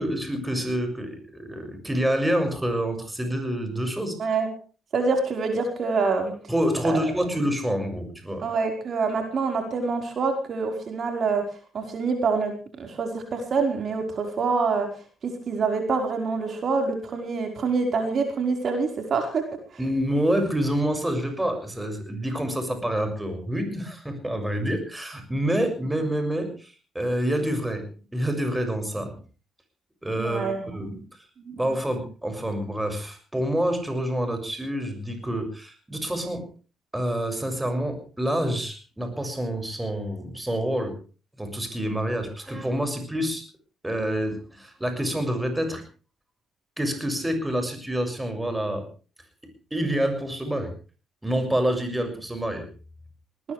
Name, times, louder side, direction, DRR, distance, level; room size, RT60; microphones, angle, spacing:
voice 1, 0.0-4.3 6.5-8.5 19.8-27.9 28.1-29.2 30.0-31.0 31.5-36.5 36.9-41.0 41.4-43.4 43.8-45.8 46.8-48.8 49.7-50.7 51.2-52.7, right 1 dB, 10° right, 6 dB, 6.6 m, -27 dB
voice 2, 4.9-6.3 6.8-7.0 8.4-11.4 11.7-12.5 12.8-14.9 15.5-19.4 30.2-31.0 31.4-31.6, right 4 dB, 55° right, 4 dB, 5.1 m, -26 dB
20.5 x 20.0 x 3.5 m, 0.38 s
cardioid pair, 90°, 0 cm